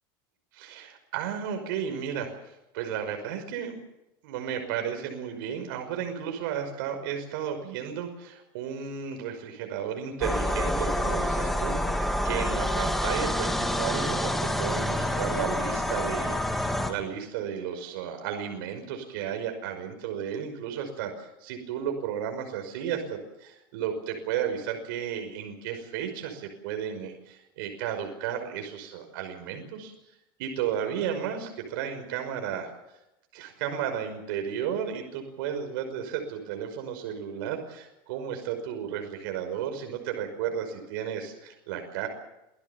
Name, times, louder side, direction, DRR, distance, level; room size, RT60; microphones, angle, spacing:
voice 1, 0.5-3.8 4.2-29.9 30.4-32.7 33.3-42.1, right 8 dB, 75° right, 5 dB, 5.7 m, -33 dB
sound 1, 10.2-16.9, left 1 dB, ahead, 2.6 m, -27 dB
27.5 x 17.5 x 7.3 m, 0.91 s
supercardioid pair, 145°, 12 cm